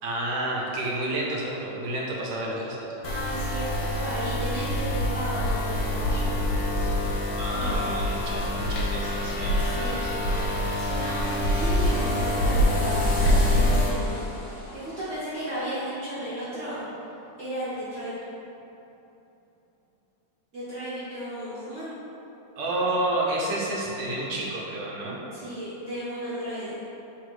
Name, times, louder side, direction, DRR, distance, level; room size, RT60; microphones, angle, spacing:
voice 1, 0.0-2.9 7.4-10.3 22.6-25.2, right 1 dB, 70° right, -3 dB, 1.2 m, -30 dB
sound 1, 3.0-13.9, left 1 dB, 80° left, 1.3 m, -25 dB
voice 2, 3.0-3.7 3.9-6.5 7.5-8.0 9.6-10.0 10.7-11.2 11.5-14.3 14.7-16.8 17.4-18.1 20.5-21.9 25.3-26.7, right 1 dB, 50° right, -12 dB, 0.9 m, -34 dB
sound 2, 8.0-17.3 17.7-17.8, equal, 50° left, 1.4 m, -39 dB
3.3 x 2.7 x 4.5 m, 2.9 s
omnidirectional pair, 2.2 m